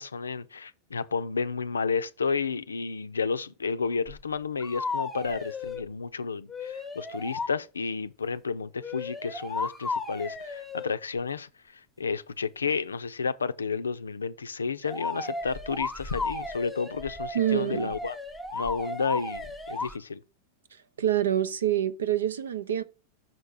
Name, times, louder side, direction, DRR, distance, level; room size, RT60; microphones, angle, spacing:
voice 1, 0.0-18.2 18.5-20.2, left 5 dB, 75° left, 0.5 m, -31 dB
sound 1, 4.1-4.2 4.6-5.9 6.5-7.5 8.8-10.9 14.8-20.0, left 3 dB, 5° left, 0.9 m, -35 dB
voice 2, 17.3-17.9 21.0-22.8, right 11 dB, 65° right, 0.6 m, -26 dB
6.3 x 4.5 x 4.8 m
figure-of-eight pair, 90°, 0 cm